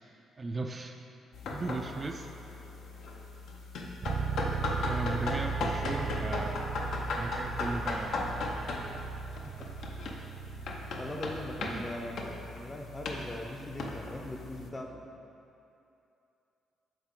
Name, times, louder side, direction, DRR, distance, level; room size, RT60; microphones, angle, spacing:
voice 1, 0.4-1.0 1.5-2.6 4.8-6.6 7.2-8.4 11.6-11.9, right 2 dB, 30° right, 4 dB, 0.3 m, -37 dB
sound 1, 1.3-14.7, left 2 dB, 70° left, 0.6 m, -37 dB
sound 2, 4.0-13.8, right 6 dB, 60° right, 0.6 m, -38 dB
voice 2, 10.5-15.0, left 1 dB, 20° left, 3 dB, 0.6 m, -41 dB
7.9 x 3.6 x 3.7 m, 2.8 s
cardioid pair, 90°, 0 cm